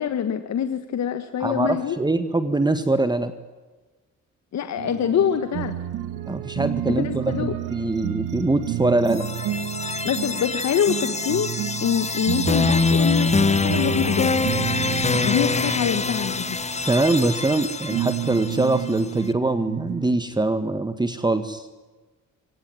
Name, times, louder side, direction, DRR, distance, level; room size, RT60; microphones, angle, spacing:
voice 1, 0.0-2.0 4.5-5.7 6.9-7.5 10.0-11.5 11.8-14.4 15.2-16.6, left 8 dB, 60° left, 9 dB, 1.7 m, -25 dB
voice 2, 1.4-3.3 6.3-9.2 16.9-21.7, right 2 dB, 15° right, 10 dB, 1.8 m, -23 dB
sound 1, 4.8-17.6 17.9-20.2, right 12 dB, 90° right, 2.2 m, -31 dB
sound 2, 9.1-19.0, left 4 dB, 20° left, 1.4 m, -25 dB
24.5 x 19.0 x 9.7 m, 1.2 s
cardioid pair, 90°, 30 cm